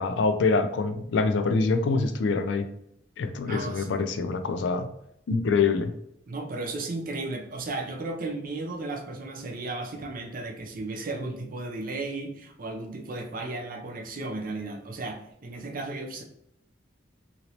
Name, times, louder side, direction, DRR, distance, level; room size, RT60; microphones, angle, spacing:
voice 1, 0.0-2.6 3.2-4.9 5.3-5.9, left 4 dB, 70° left, 9 dB, 0.4 m, -25 dB
voice 2, 3.5-3.9 6.3-16.2, right 2 dB, 50° right, 2 dB, 0.5 m, -34 dB
3.0 x 2.8 x 2.8 m, 0.75 s
head